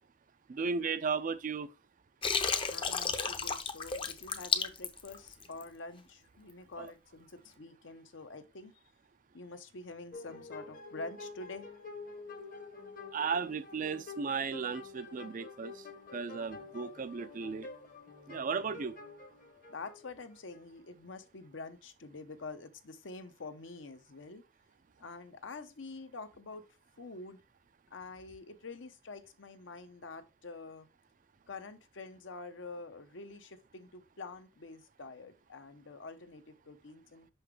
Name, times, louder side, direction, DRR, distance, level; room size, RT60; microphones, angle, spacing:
voice 1, 0.5-1.7 6.8-6.9 13.1-15.9 16.1-17.7 18.3-18.9, right 5 dB, 40° right, 0.4 m, -35 dB
Water, 2.2-5.7, left 5 dB, 25° left, 0.6 m, -32 dB
voice 2, 2.7-8.8 9.3-11.7 18.5-18.7 19.7-24.4 25.0-26.6 27.0-27.4 27.9-30.9 31.5-37.3, left 3 dB, 70° left, 0.8 m, -47 dB
sound 1, 10.1-20.6, left 4 dB, 45° left, 1.0 m, -48 dB
5.8 x 5.6 x 3.3 m
head